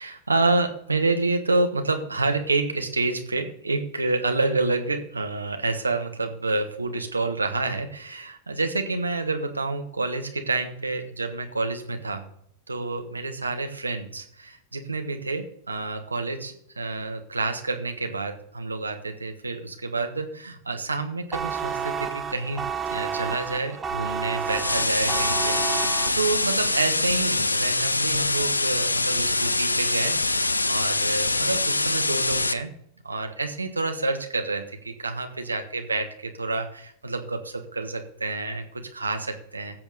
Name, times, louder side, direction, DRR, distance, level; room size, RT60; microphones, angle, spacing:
voice 1, 0.0-12.2 12.7-30.2 30.7-32.7 33.0-39.8, right 3 dB, 80° right, 6 dB, 1.2 m, -28 dB
Red Alert Nuclear Buzzer, 21.3-26.6, right 6 dB, 15° right, 0.9 m, -31 dB
sound 1, 24.4-32.5, left 2 dB, 80° left, 0.5 m, -24 dB
16.0 x 7.0 x 4.0 m, 0.69 s
figure-of-eight pair, 90°, 0 cm